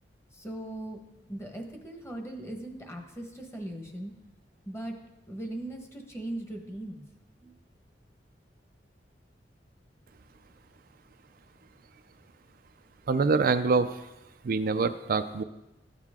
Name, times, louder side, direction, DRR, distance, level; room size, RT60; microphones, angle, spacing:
voice 1, 0.3-1.0 1.3-4.1 4.7-4.9 5.3-7.0 7.4-7.5, right 1 dB, 15° left, 2 dB, 1.3 m, -39 dB
voice 2, 13.1-13.9 14.4-15.4, right 4 dB, 55° right, 9 dB, 0.4 m, -25 dB
13.5 x 9.0 x 3.7 m, 0.98 s
head